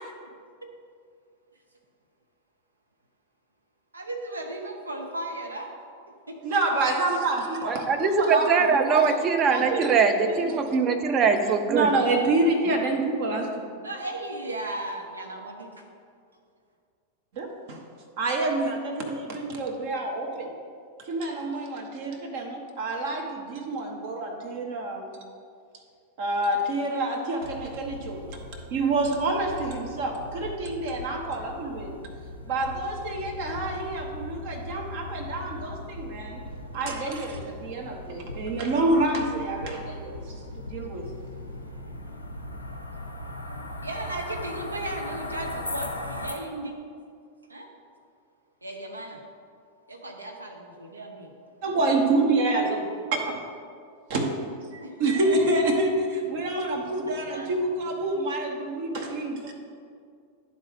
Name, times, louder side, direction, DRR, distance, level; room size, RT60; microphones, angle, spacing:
voice 1, 3.9-5.7 6.3-6.4 7.5-7.7 13.8-15.8 43.8-46.8 47.5-47.7 48.6-49.2 49.9-51.3 54.8-54.9 57.1-57.5, right 1 dB, 80° right, 2 dB, 0.6 m, -36 dB
voice 2, 6.4-9.2 9.5-9.9 10.2-10.3 11.2-11.3 11.7-13.7 17.3-17.8 18.2-20.5 21.0-25.1 26.2-28.4 28.7-31.9 32.4-36.4 36.7-41.1 51.6-53.4 54.1-54.3 54.7-59.5, right 2 dB, 50° right, 1 dB, 0.9 m, -27 dB
voice 3, 7.7-11.9, right 5 dB, 30° right, 6 dB, 0.6 m, -22 dB
sound 1, 27.4-46.3, left 1 dB, 85° left, 0.7 m, -39 dB
11.0 x 3.9 x 3.4 m, 2.3 s
figure-of-eight pair, 90°, 0 cm